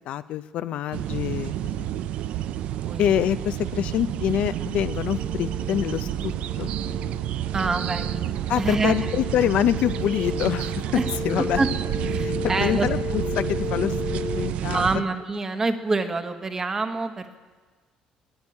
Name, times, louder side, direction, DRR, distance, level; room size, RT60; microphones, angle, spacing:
voice 1, 0.1-1.9 3.0-6.7 8.5-11.6 12.2-15.0, left 11 dB, 65° left, 13 dB, 0.5 m, -26 dB
sound 1, 0.9-15.0, right 11 dB, 65° right, 0.4 m, -29 dB
sound 2, 5.1-14.5, left 6 dB, 15° left, 0.8 m, -35 dB
voice 2, 7.5-8.3 8.6-8.9 10.9-11.1 11.6-11.7 12.1-12.9 14.6-17.4, right 3 dB, 20° right, 8 dB, 1.1 m, -26 dB
12.5 x 10.5 x 9.7 m, 1.4 s
cardioid pair, 140°, 2 cm